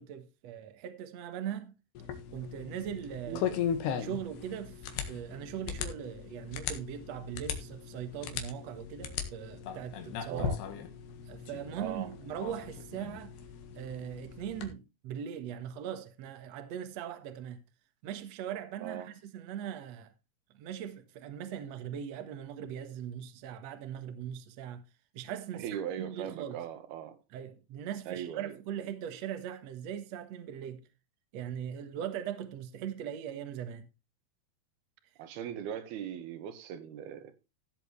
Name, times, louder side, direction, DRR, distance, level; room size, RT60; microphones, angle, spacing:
voice 1, 0.0-1.7 2.3-3.5 4.0-10.5 11.3-13.3 13.8-17.6 18.0-20.1 20.5-24.8 25.1-26.6 27.3-30.8 31.3-33.9, right 9 dB, 55° right, 2.0 m, -40 dB
sound 1, 2.0-14.7, left 8 dB, 80° left, 3.6 m, -38 dB
voice 2, 10.3-10.6 11.8-12.1 18.8-19.1 25.6-27.2 28.1-28.6 35.2-37.3, right 9 dB, 75° right, 3.3 m, -39 dB
16.0 x 7.7 x 3.2 m
omnidirectional pair, 4.7 m